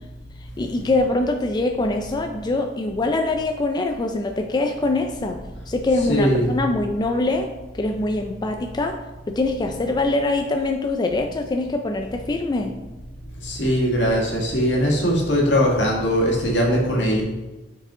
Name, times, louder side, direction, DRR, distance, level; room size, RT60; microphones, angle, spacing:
voice 1, 0.6-5.4 5.7-7.5 7.7-9.0 9.3-12.7, left 2 dB, 25° left, 4 dB, 0.3 m, -23 dB
voice 2, 6.1-6.6 13.4-17.2, equal, 80° left, -2 dB, 1.7 m, -20 dB
6.2 x 4.8 x 3.7 m, 1.1 s
head